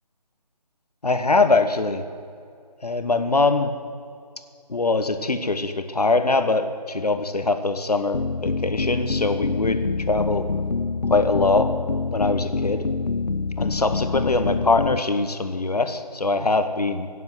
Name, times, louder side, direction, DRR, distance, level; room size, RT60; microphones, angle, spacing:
voice 1, 1.0-2.0 2.8-3.7 4.7-10.5 11.1-11.7 12.1-12.8 13.6-17.1, left 3 dB, 70° left, 9 dB, 1.3 m, -22 dB
sound 1, 8.1-15.0, left 4 dB, 85° left, 0.6 m, -26 dB
17.0 x 7.5 x 8.0 m, 2.4 s
figure-of-eight pair, 155°, 21 cm